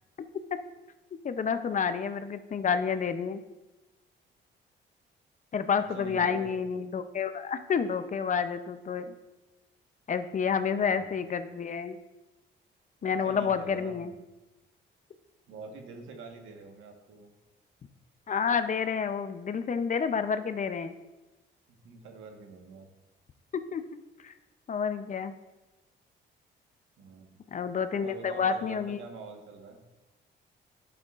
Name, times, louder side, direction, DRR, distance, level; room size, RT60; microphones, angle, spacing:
voice 1, 1.2-3.4 5.5-9.1 10.1-12.0 13.0-14.1 18.3-20.9 23.7-24.3 24.7-25.3 27.5-29.0, left 6 dB, 40° left, 10 dB, 0.6 m, -29 dB
voice 2, 5.9-6.8 10.6-11.2 13.0-14.2 15.5-17.3 21.7-22.9 27.0-27.4 27.9-29.8, right 4 dB, 85° right, 3 dB, 1.4 m, -45 dB
11.0 x 7.9 x 2.5 m, 1.0 s
cardioid pair, 90°, 20 cm